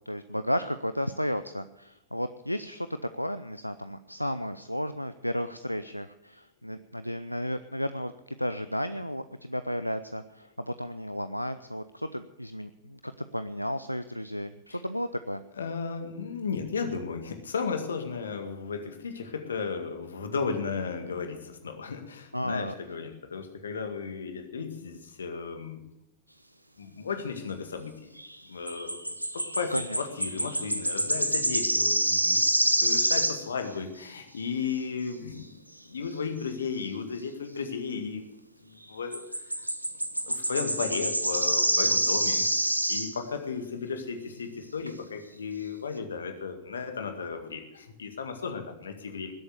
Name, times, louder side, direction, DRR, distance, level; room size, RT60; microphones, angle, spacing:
voice 1, 0.1-15.4 22.3-22.7 29.7-30.0, equal, 90° left, 11 dB, 0.5 m, -33 dB
voice 2, 15.6-25.8 26.8-28.1 28.5-29.0 29.3-35.6 35.9-38.3 38.6-39.7 40.2-49.3, left 5 dB, 70° left, 6 dB, 2.0 m, -35 dB
sound 1, 28.2-28.4 28.7-33.5 39.1-43.2 44.5-44.6 44.9-45.0, right 1 dB, 85° right, 0.9 m, -27 dB
20.5 x 8.2 x 6.8 m, 0.86 s
figure-of-eight pair, 90°, 0 cm